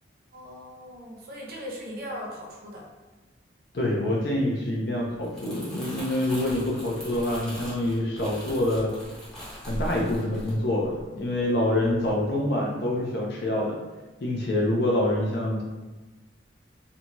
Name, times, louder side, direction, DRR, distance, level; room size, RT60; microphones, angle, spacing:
voice 1, 0.3-2.9, equal, 55° right, -3 dB, 0.6 m, -39 dB
voice 2, 3.7-8.9 9.7-13.8 14.2-15.6, left 1 dB, 65° left, -1 dB, 0.5 m, -26 dB
Crumpling crinkling, 5.2-11.5 11.8-12.1, equal, 5° left, 0.6 m, -40 dB
2.6 x 2.2 x 2.9 m, 1.2 s
head